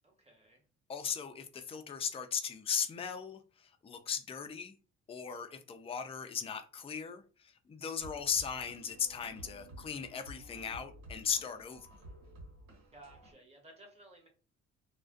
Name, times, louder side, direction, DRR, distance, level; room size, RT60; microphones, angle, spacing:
voice 1, 0.0-0.6 12.9-14.3, right 1 dB, 20° right, 1.0 m, -57 dB
voice 2, 0.9-4.7 5.1-11.9, left 7 dB, 20° left, 0.3 m, -37 dB
sound 1, 8.0-13.3, right 1 dB, 80° right, 1.2 m, -52 dB
2.3 x 2.1 x 2.4 m
cardioid pair, 95°, 30 cm